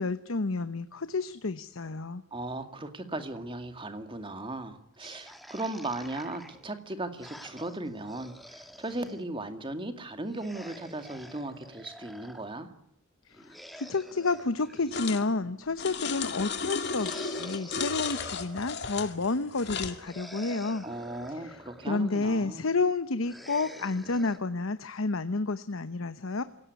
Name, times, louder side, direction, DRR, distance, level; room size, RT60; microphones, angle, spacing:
voice 1, 0.0-2.2 13.3-20.8 21.3-21.6 21.9-26.4, left 3 dB, 80° left, 12 dB, 0.9 m, -30 dB
voice 2, 2.3-12.7 20.8-22.7, right 2 dB, 25° right, 8 dB, 2.2 m, -37 dB
sound 1, 5.0-9.2 10.2-12.4 13.3-15.7 16.8-19.0 20.0-22.2 23.2-24.4, equal, ahead, 1.8 m, -48 dB
sound 2, 14.9-15.3 15.8-20.0, left 5 dB, 55° left, 2.3 m, -34 dB
27.0 x 17.5 x 9.6 m, 0.78 s
head